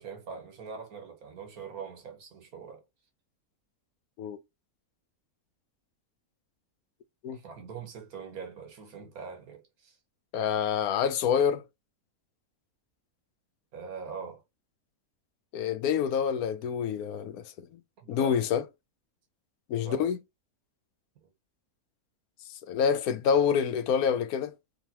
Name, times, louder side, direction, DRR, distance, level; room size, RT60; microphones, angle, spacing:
voice 1, 0.0-2.8 7.3-10.0 13.7-14.4 18.0-18.5 19.8-20.1 21.2-21.3, right 6 dB, 75° right, 1.6 m, -42 dB
voice 2, 10.3-11.6 15.5-17.5 18.1-18.6 19.7-20.2 22.7-24.5, left 7 dB, 80° left, 1.1 m, -27 dB
3.6 x 3.0 x 2.9 m
omnidirectional pair, 1.6 m